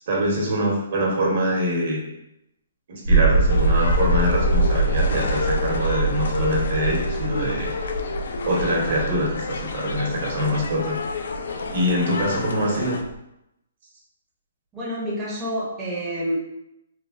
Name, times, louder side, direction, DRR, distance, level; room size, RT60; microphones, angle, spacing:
voice 1, 0.0-2.0 2.9-7.7 8.4-11.0 11.7-13.0, equal, 55° right, -2 dB, 1.0 m, -24 dB
sound 1, 3.0-13.2, right 2 dB, 85° right, 0.4 m, -24 dB
sound 2, 3.5-13.0, left 4 dB, 70° left, 0.4 m, -30 dB
voice 2, 7.1-7.6 14.7-16.3, equal, 10° right, -7 dB, 0.6 m, -29 dB
3.2 x 2.1 x 2.5 m, 0.84 s
hypercardioid pair, 155°, 0 cm